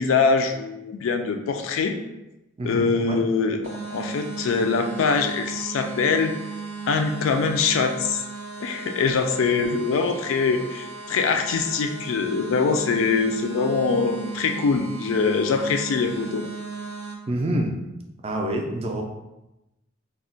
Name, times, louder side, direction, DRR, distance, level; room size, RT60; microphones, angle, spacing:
voice 1, 0.0-1.9 2.6-6.3 6.9-8.2 8.6-16.4, left 5 dB, 80° left, 6 dB, 0.3 m, -23 dB
voice 2, 2.6-3.2 17.3-17.7 18.2-19.0, right 1 dB, 30° right, 2 dB, 0.3 m, -27 dB
sound 1, 3.6-17.1, right 4 dB, 90° right, 0.6 m, -36 dB
2.3 x 2.1 x 3.8 m, 0.95 s
head